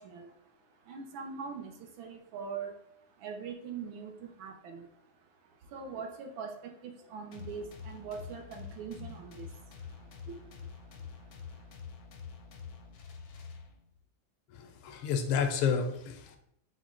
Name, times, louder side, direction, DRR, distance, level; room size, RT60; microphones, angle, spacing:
voice 1, 0.0-11.7, right 5 dB, 75° right, 4 dB, 1.3 m, -44 dB
sound 1, 7.3-14.0, left 6 dB, 70° left, 0.9 m, -47 dB
voice 2, 14.5-16.4, left 6 dB, 90° left, 7 dB, 1.5 m, -30 dB
6.1 x 2.1 x 3.6 m, 0.74 s
omnidirectional pair, 2.3 m